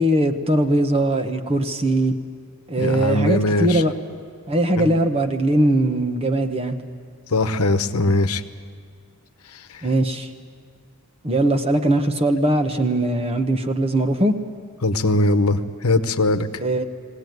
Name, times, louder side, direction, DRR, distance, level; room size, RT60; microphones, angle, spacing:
voice 1, 0.0-2.1 2.7-3.9 4.5-6.8 9.8-10.3 11.2-14.3 16.6-16.8, right 1 dB, 25° right, 7 dB, 1.1 m, -20 dB
voice 2, 2.8-3.8 4.8-4.9 7.3-8.4 14.8-16.5, left 2 dB, 85° left, 9 dB, 1.0 m, -20 dB
21.0 x 18.0 x 9.4 m, 2.1 s
head